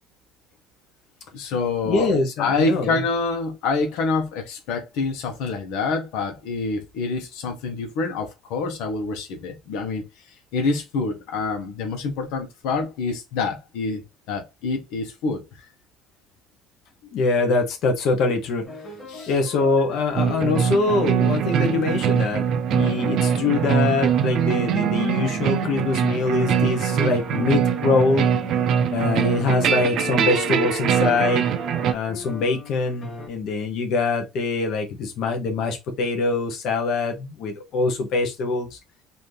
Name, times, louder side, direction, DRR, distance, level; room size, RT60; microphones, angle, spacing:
voice 1, 1.3-2.1 2.4-10.0 10.5-15.7 19.1-19.3, left 4 dB, 85° left, 1.0 m, -26 dB
voice 2, 1.9-3.0 17.1-18.7 19.3-28.3 28.9-31.5 31.9-38.8, left 3 dB, 55° left, 1.0 m, -23 dB
sound 1, 18.6-22.0 22.7-28.9 29.2-33.3, left 2 dB, 20° left, 1.8 m, -39 dB
sound 2, 20.2-31.9, right 8 dB, 50° right, 0.5 m, -22 dB
4.1 x 2.7 x 3.3 m
cardioid pair, 160°, 0 cm